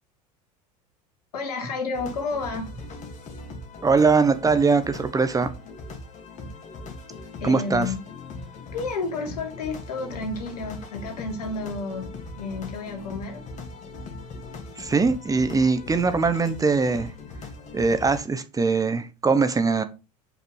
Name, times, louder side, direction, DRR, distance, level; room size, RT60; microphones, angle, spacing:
voice 1, 1.3-2.8 7.4-8.0 8.7-12.1 12.4-13.4, left 3 dB, 75° left, 2.9 m, -31 dB
sound 1, 1.9-18.2, left 3 dB, 35° left, 2.6 m, -40 dB
voice 2, 3.8-5.5 7.4-7.9 14.8-17.1 17.7-19.8, right 4 dB, 15° right, 1.3 m, -21 dB
7.7 x 5.7 x 5.6 m
hypercardioid pair, 80°, 20 cm